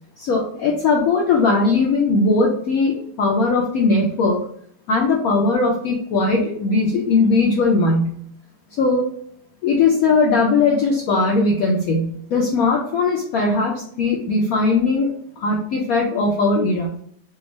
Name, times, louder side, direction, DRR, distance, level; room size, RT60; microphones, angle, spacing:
voice 1, 0.2-4.4 4.9-8.2 8.8-9.1 9.6-15.1 15.4-16.9, left 3 dB, 70° left, -1 dB, 0.9 m, -19 dB
3.4 x 2.3 x 3.0 m, 0.65 s
omnidirectional pair, 1.9 m